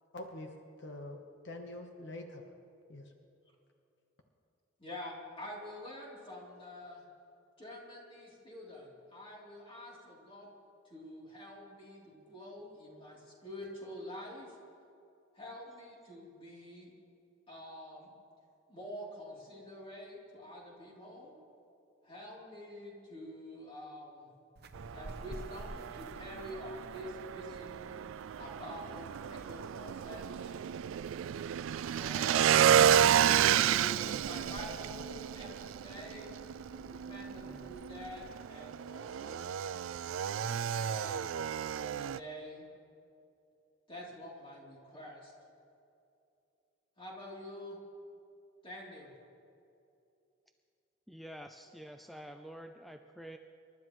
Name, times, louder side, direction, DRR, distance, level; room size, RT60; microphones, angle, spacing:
voice 1, 0.1-0.5 0.8-1.2 1.4-2.4 2.9-3.1, left 1 dB, 65° left, 3 dB, 1.1 m, -44 dB
voice 2, 4.8-7.0 7.6-10.5 10.8-14.6 15.3-16.9 17.5-18.1 18.7-21.4 22.0-24.3 24.9-28.0 28.3-30.6 31.9-36.3 36.8-39.4 40.3-41.3 41.7-42.7 43.9-45.3 47.0-47.8 48.6-49.1, left 1 dB, 30° left, -4 dB, 3.3 m, -47 dB
sound 1, 24.6-38.4, right 2 dB, 55° right, 0.7 m, -53 dB
Motorcycle / Engine, 24.8-42.2, right 9 dB, 90° right, 0.3 m, -31 dB
voice 3, 37.4-37.7 51.1-53.4, equal, ahead, 5 dB, 0.4 m, -48 dB
27.5 x 12.0 x 3.1 m, 2.7 s
head